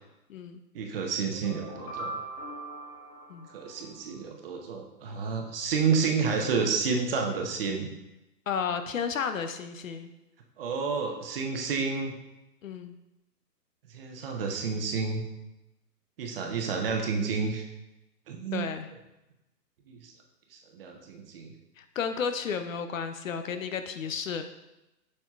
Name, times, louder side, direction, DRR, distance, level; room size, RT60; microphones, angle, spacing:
voice 1, 0.7-2.1 3.5-7.9 10.6-12.1 13.9-15.2 16.2-17.7 18.3-18.7 19.9-20.1 20.7-21.5, right 5 dB, 35° right, 3 dB, 0.8 m, -30 dB
sound 1, 1.2-4.3, right 2 dB, 30° left, 1.3 m, -41 dB
voice 2, 8.5-10.1 12.6-12.9 18.5-18.9 21.8-24.5, left 6 dB, 55° left, 9 dB, 0.6 m, -32 dB
7.3 x 6.5 x 2.3 m, 0.96 s
hypercardioid pair, 145°, 50 cm